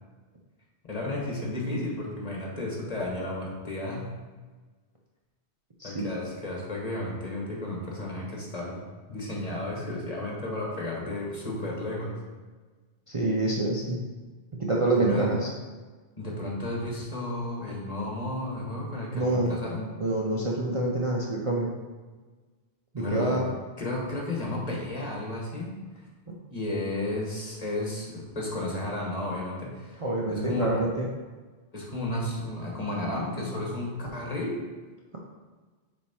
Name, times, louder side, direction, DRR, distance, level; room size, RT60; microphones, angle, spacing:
voice 1, 0.9-4.1 5.8-12.2 14.9-15.3 16.2-19.9 23.0-23.4 23.8-25.7 26.5-30.0 30.3-30.8 31.7-34.6, left 1 dB, 35° left, -3 dB, 1.4 m, -33 dB
voice 2, 5.8-6.1 13.1-14.0 14.6-15.5 19.1-19.5 20.0-21.7 22.9-23.4 26.3-26.4 30.0-31.1, right 2 dB, 35° right, -3 dB, 0.6 m, -26 dB
7.2 x 3.6 x 4.3 m, 1.3 s
omnidirectional pair, 1.1 m